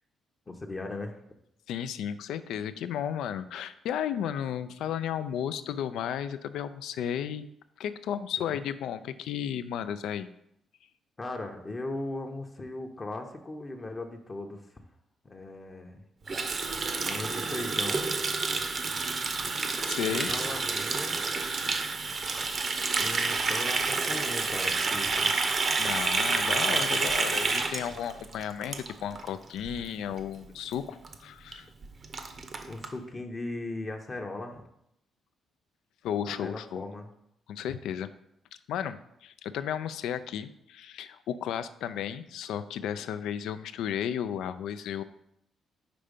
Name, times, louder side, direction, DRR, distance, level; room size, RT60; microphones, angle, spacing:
voice 1, 0.5-1.2 8.4-8.5 11.2-14.8 15.2-16.0 17.0-18.1 20.0-21.2 23.0-25.3 32.7-34.6 36.3-37.1, left 2 dB, 30° left, 3 dB, 0.7 m, -38 dB
voice 2, 1.7-7.5 7.8-10.3 19.8-20.3 25.8-31.7 36.0-36.8 37.5-38.1 38.7-45.0, left 9 dB, 85° left, 12 dB, 0.3 m, -34 dB
Water tap faucet, 16.3-29.3 29.6-29.8 30.1-30.5 30.7-30.8 31.0-31.1 31.5-31.6 31.8-32.9, right 4 dB, 45° right, 0.7 m, -29 dB
5.0 x 4.4 x 5.1 m, 0.78 s
cardioid pair, 90°, 0 cm